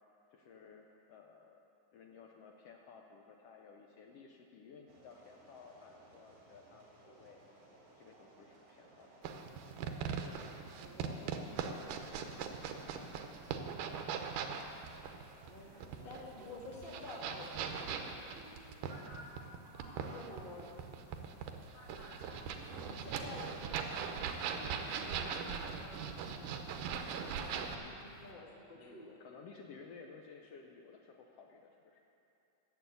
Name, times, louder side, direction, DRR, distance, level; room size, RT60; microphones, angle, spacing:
voice 1, 0.3-7.4 8.0-9.2 15.7-16.4 28.7-32.0, left 5 dB, 80° left, 1 dB, 1.4 m, -56 dB
sound 1, 4.9-17.4, right 2 dB, 70° right, 4.1 m, -62 dB
sound 2, 9.2-27.8, right 7 dB, 85° right, 2.3 m, -40 dB
voice 2, 10.8-12.3 15.5-15.7 16.0-19.3 20.1-20.7 22.2-29.2, left 2 dB, 30° left, -3 dB, 1.1 m, -52 dB
sound 3, 17.1-28.3, left 1 dB, 45° left, 0.6 m, -57 dB
12.0 x 7.0 x 8.2 m, 2.9 s
omnidirectional pair, 3.6 m